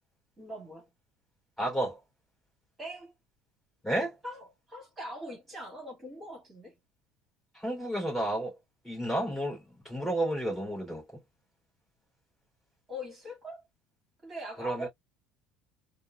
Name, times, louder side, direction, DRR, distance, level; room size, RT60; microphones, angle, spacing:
voice 1, 0.4-0.9 2.8-3.1 4.2-6.8 12.9-13.6 14.2-14.9, equal, 15° right, 2.0 m, -42 dB
voice 2, 1.6-2.0 3.8-4.1 7.5-8.5 8.8-11.0 14.6-14.9, right 1 dB, 5° left, 2.6 m, -31 dB
4.8 x 2.1 x 2.3 m
cardioid pair, 175°, 0 cm